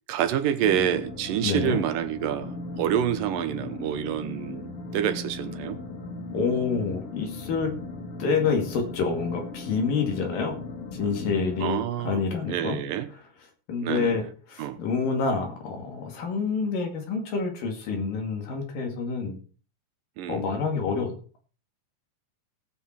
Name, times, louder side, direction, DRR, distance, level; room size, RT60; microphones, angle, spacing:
voice 1, 0.1-5.8 11.6-12.2 12.5-13.1 13.8-14.2 14.6-14.8 20.2-20.4, right 10 dB, 90° right, 9 dB, 2.7 m, -27 dB
sound 1, 0.6-11.7, left 3 dB, 50° left, 2.6 m, -38 dB
voice 2, 1.4-1.8 6.3-7.7 8.2-10.6 10.9-12.8 13.7-19.4 20.3-21.1, left 5 dB, 90° left, 3 dB, 4.0 m, -27 dB
18.0 x 7.6 x 4.5 m, 0.39 s
omnidirectional pair, 3.8 m